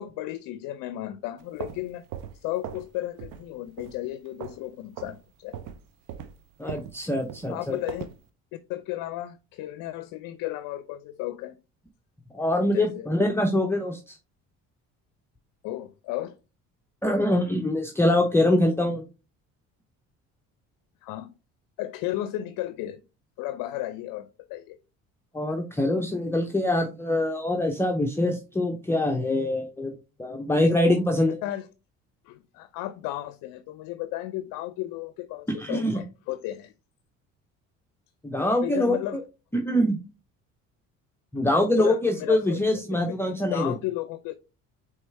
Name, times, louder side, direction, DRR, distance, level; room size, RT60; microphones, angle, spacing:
voice 1, 0.0-2.0 2.4-5.6 6.7-6.8 7.5-8.1 8.7-11.5 12.7-13.1 15.6-16.4 21.0-21.3 21.8-23.0 23.4-24.8 30.5-30.6 31.4-31.7 32.2-36.7 38.6-39.2 41.6-43.2 43.5-44.3, left 14 dB, 70° left, 0.5 m, -34 dB
sound 1, 1.4-2.9 3.2-3.5 3.8-4.7 5.0-5.2 5.5-8.2, right 9 dB, 70° right, 0.6 m, -40 dB
voice 2, 6.6-7.8 12.3-14.2 17.0-19.0 25.3-29.9 30.2-31.4 35.5-36.0 38.2-39.2 39.5-40.0 41.3-43.7, left 1 dB, 5° left, 0.6 m, -24 dB
4.5 x 3.3 x 3.2 m
supercardioid pair, 75°, 34 cm